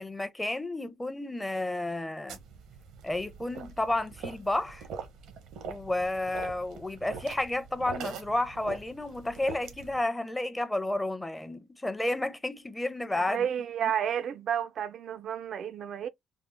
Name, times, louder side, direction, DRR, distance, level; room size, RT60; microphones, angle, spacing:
voice 1, 0.0-2.4 3.0-4.9 5.6-13.5 13.8-13.9, left 1 dB, 10° left, 0.5 m, -31 dB
sound 1, 2.3-10.0, right 6 dB, 90° right, 0.7 m, -43 dB
voice 2, 13.1-16.1, right 9 dB, 60° right, 0.3 m, -31 dB
3.6 x 2.0 x 3.2 m
cardioid pair, 110°, 0 cm